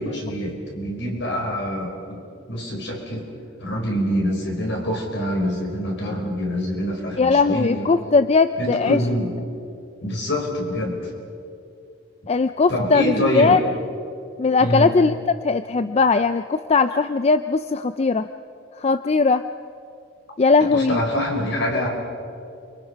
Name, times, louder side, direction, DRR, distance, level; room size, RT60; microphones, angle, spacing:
voice 1, 0.0-2.2 2.5-3.2 3.6-7.9 8.6-9.3 10.0-11.1 12.7-13.6 14.6-14.9 20.7-21.9, equal, 65° left, 0 dB, 5.3 m, -25 dB
voice 2, 7.2-9.0 12.3-13.6 14.4-15.1 15.4-18.3 18.8-19.4 20.4-21.0, left 4 dB, 35° left, 11 dB, 0.5 m, -19 dB
29.0 x 24.5 x 5.7 m, 2.5 s
head